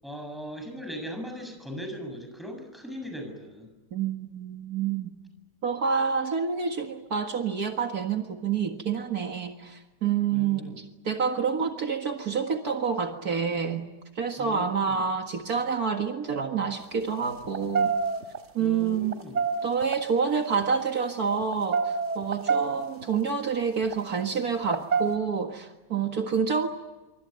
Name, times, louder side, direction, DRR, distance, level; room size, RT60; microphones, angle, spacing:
voice 1, 0.0-3.7 10.3-10.8 14.4-15.0 18.6-19.4, equal, ahead, 5 dB, 7.2 m, -39 dB
voice 2, 3.9-5.1 5.6-13.9 14.2-18.0 18.5-19.2 19.6-26.7, right 6 dB, 65° right, 4 dB, 2.2 m, -28 dB
sound 1, 16.8-16.9 17.4-18.4 19.0-20.0 20.6-20.8 21.3-23.2 23.8-24.0 24.6-25.2, right 5 dB, 45° right, 1.9 m, -27 dB
26.0 x 25.0 x 9.3 m, 1.1 s
omnidirectional pair, 1.7 m